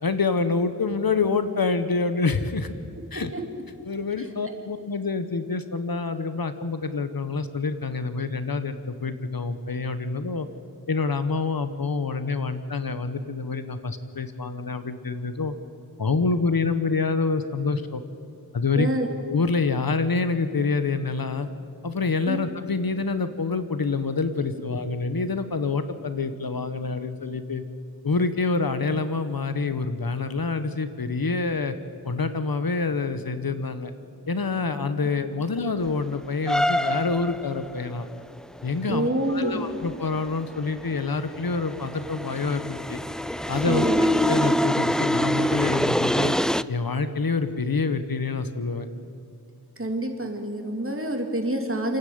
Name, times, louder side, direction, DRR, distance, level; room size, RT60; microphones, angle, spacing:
voice 1, 0.0-2.7 3.1-3.3 3.8-10.5 10.9-15.5 16.0-18.0 18.5-18.9 19.3-21.5 21.8-27.6 28.0-31.7 32.0-33.9 34.3-38.1 38.6-43.0 43.5-46.4 46.7-48.9, left 4 dB, 65° left, 10 dB, 1.2 m, -27 dB
voice 2, 18.7-19.1 22.3-22.4 38.9-39.7 43.7-44.0 49.8-52.0, right 1 dB, 35° right, 3 dB, 2.8 m, -27 dB
sound 1, 35.9-36.0 36.5-38.9 39.3-46.6, equal, ahead, 0.4 m, -25 dB
28.0 x 9.9 x 9.5 m, 2.6 s
wide cardioid pair, 50°, 37 cm